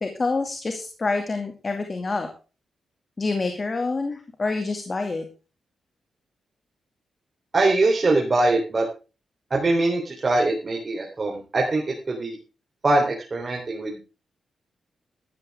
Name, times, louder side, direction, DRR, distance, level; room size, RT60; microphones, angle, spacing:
voice 1, 0.0-2.3 3.2-5.2, left 3 dB, 40° left, 5 dB, 2.3 m, -27 dB
voice 2, 7.5-8.9 9.5-12.4 12.8-14.0, right 2 dB, 40° right, 0 dB, 3.7 m, -22 dB
13.0 x 13.0 x 3.6 m, 0.33 s
cardioid pair, 60°, 0 cm